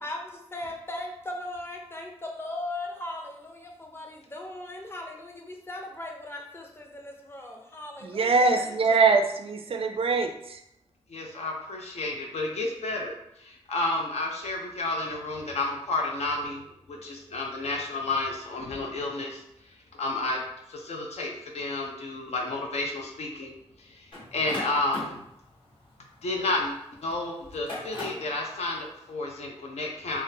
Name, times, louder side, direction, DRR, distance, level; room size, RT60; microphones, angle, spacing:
voice 1, 0.0-9.0, left 1 dB, 20° left, 0.6 m, -38 dB
voice 2, 8.0-10.6, right 4 dB, 55° right, 0.4 m, -23 dB
voice 3, 11.1-19.4 19.9-20.4 20.7-23.5 23.8-24.1 24.3-25.2 26.2-26.7 27.0-30.2, left 2 dB, 75° left, 0.7 m, -31 dB
sound 1, 24.1-26.8 27.4-28.3, left 1 dB, 50° left, 1.1 m, -39 dB
3.6 x 2.0 x 2.7 m
cardioid pair, 70°, 11 cm